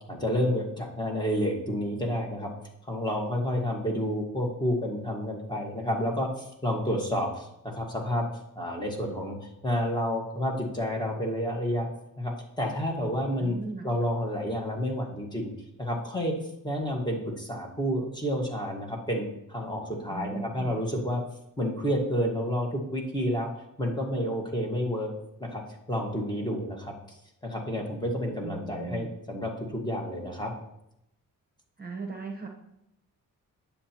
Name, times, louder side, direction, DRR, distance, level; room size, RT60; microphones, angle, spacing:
voice 1, 0.1-2.5 2.9-8.3 8.5-11.9 12.2-13.6 13.8-15.5 15.8-16.3 16.6-21.2 21.6-23.5 23.8-25.1 25.4-25.6 25.9-26.9 27.4-30.5, equal, 10° left, 0 dB, 1.5 m, -30 dB
voice 2, 13.4-13.9 20.1-20.9 28.3-29.1 31.8-32.5, right 4 dB, 30° right, 1 dB, 0.9 m, -38 dB
9.6 x 7.1 x 2.9 m, 0.80 s
wide cardioid pair, 110°, 34 cm